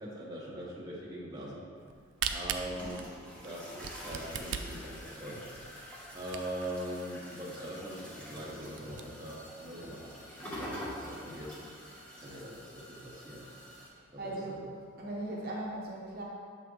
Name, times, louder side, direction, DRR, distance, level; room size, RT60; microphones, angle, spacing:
voice 1, 0.0-1.6 2.3-3.1 3.4-5.4 6.1-11.6 12.2-13.5 14.1-14.6, right 1 dB, 20° right, -6 dB, 1.0 m, -42 dB
Camera, 1.8-6.8 7.3-7.4 7.6-7.7 8.2-8.3 8.6-9.0, right 8 dB, 65° right, 0.4 m, -38 dB
sound 1, 2.2-13.9, equal, 5° left, 1.0 m, -47 dB
voice 2, 14.2-14.6 15.0-16.2, right 1 dB, 45° right, -4 dB, 0.9 m, -38 dB
7.4 x 5.8 x 3.1 m, 2.1 s
head